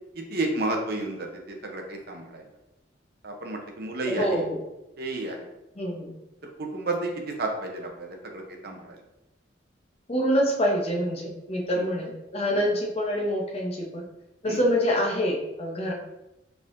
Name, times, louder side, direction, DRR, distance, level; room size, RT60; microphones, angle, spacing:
voice 1, 0.3-1.3 1.6-2.4 3.2-4.4 5.0-5.4 6.6-7.1 7.4-9.0 11.7-11.9 12.5-12.7 14.5-14.6, right 2 dB, 55° right, 2 dB, 0.7 m, -31 dB
voice 2, 4.1-4.6 5.8-6.1 10.1-14.0 14.4-15.9, equal, 35° left, -1 dB, 0.7 m, -26 dB
4.6 x 3.6 x 2.6 m, 0.94 s
head